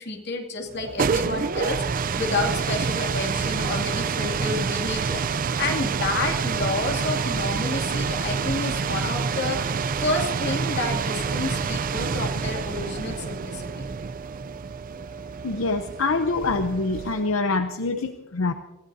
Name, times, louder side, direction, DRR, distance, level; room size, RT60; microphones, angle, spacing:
voice 1, 0.0-9.6 10.0-13.9, left 2 dB, 55° left, 2 dB, 2.5 m, -30 dB
sound 1, 0.7-17.4, right 5 dB, 45° right, 0.5 m, -27 dB
voice 2, 15.4-18.5, left 3 dB, 80° left, 8 dB, 0.8 m, -25 dB
28.5 x 15.5 x 2.8 m, 1.2 s
head